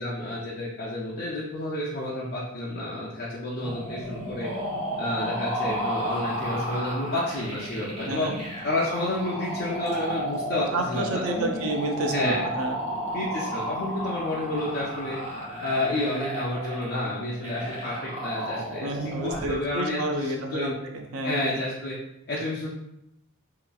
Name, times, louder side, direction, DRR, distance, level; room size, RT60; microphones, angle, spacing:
voice 1, 0.0-4.5 5.0-8.3 8.6-11.7 12.1-12.4 13.1-15.2 15.6-17.9 18.2-20.7 21.2-22.0 22.3-22.7, left 1 dB, 45° left, -6 dB, 0.4 m, -30 dB
sound 1, 3.6-19.6, right 1 dB, 30° right, 0.6 m, -33 dB
voice 2, 8.1-8.4 10.7-12.8 18.8-21.5, right 1 dB, 75° right, 3 dB, 0.4 m, -30 dB
2.8 x 2.4 x 2.3 m, 0.82 s
head